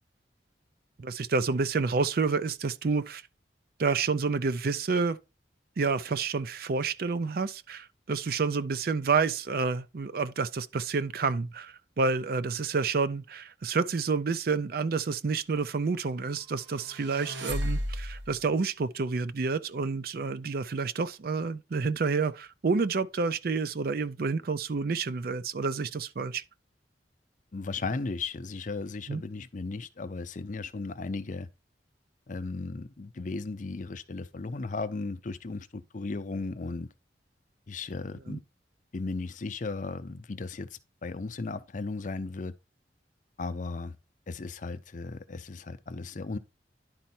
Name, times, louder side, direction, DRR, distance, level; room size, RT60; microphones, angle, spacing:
voice 1, 1.0-3.2 3.8-5.2 5.8-26.4 29.1-29.2 38.3-38.4, right 4 dB, 55° right, 0.5 m, -29 dB
sound 1, 16.6-18.4, equal, 90° right, 1.3 m, -34 dB
voice 2, 27.5-31.5 32.3-36.9 37.7-38.4 38.9-42.5 43.4-44.0 44.3-46.4, left 3 dB, 45° left, 0.6 m, -36 dB
10.5 x 4.3 x 4.3 m
head